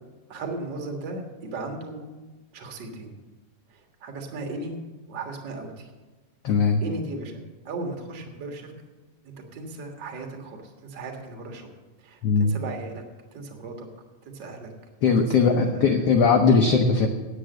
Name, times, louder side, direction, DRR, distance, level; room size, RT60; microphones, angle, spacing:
voice 1, 0.3-2.0 2.5-3.1 3.7-4.8 5.1-5.9 6.8-8.7 9.3-11.7 12.0-13.0 13.3-13.9 14.3-14.7 15.2-16.2, right 2 dB, 40° right, 2 dB, 1.8 m, -36 dB
voice 2, 6.4-6.8 12.2-12.5 15.0-17.1, left 5 dB, 80° left, 4 dB, 1.3 m, -19 dB
10.0 x 8.3 x 7.7 m, 1.2 s
omnidirectional pair, 3.9 m